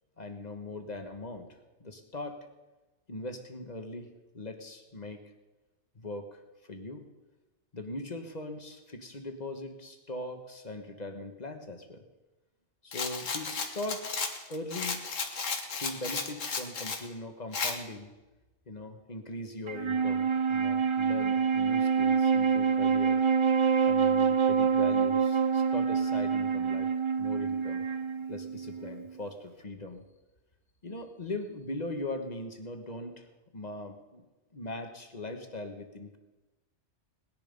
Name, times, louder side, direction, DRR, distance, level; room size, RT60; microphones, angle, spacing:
voice 1, 0.2-2.5 3.1-4.1 4.3-5.2 5.9-7.0 7.7-12.0 12.8-14.1 14.5-15.0 15.8-18.1 18.7-23.2 23.8-26.9 27.2-27.8 28.3-30.0 30.8-33.3 33.5-34.2 34.5-36.2, left 2 dB, 35° left, 6 dB, 1.4 m, -40 dB
Rattle, 12.9-17.0 17.5-17.8, left 4 dB, 90° left, 1.8 m, -34 dB
Wind instrument woodwind instrument, 19.7-29.2, right 6 dB, 50° right, 0.3 m, -26 dB
19.0 x 10.5 x 5.3 m, 1.1 s
omnidirectional pair, 1.3 m